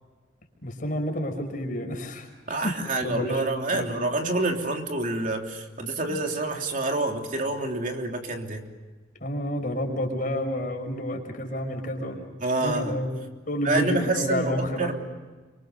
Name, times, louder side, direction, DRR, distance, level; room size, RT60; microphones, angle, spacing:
voice 1, 0.6-3.4 3.7-4.0 6.1-6.2 9.2-12.3 12.6-13.1 13.5-14.9, left 1 dB, 45° left, 3 dB, 5.6 m, -30 dB
voice 2, 2.5-8.6 12.4-13.0 13.6-14.9, right 2 dB, 45° right, 2 dB, 3.2 m, -27 dB
29.5 x 25.5 x 6.7 m, 1.3 s
head